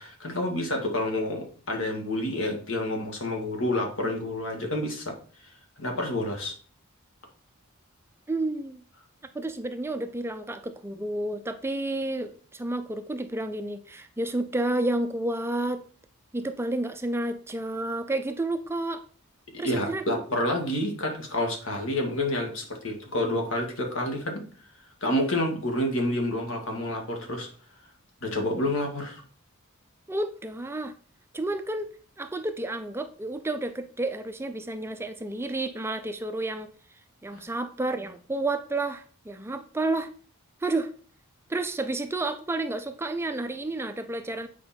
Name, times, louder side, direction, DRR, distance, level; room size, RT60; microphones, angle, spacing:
voice 1, 0.0-5.1 5.8-6.6 19.6-24.4 25.0-27.5 28.2-29.2 37.3-37.4, left 1 dB, 65° left, 2 dB, 1.9 m, -29 dB
voice 2, 8.3-8.8 9.3-15.8 16.3-19.0 19.6-20.0 30.1-30.9 31.3-31.9 32.2-36.7 37.2-40.1 40.6-40.9 41.5-44.5, right 2 dB, 10° right, 8 dB, 0.4 m, -30 dB
8.4 x 4.9 x 4.3 m, 0.43 s
head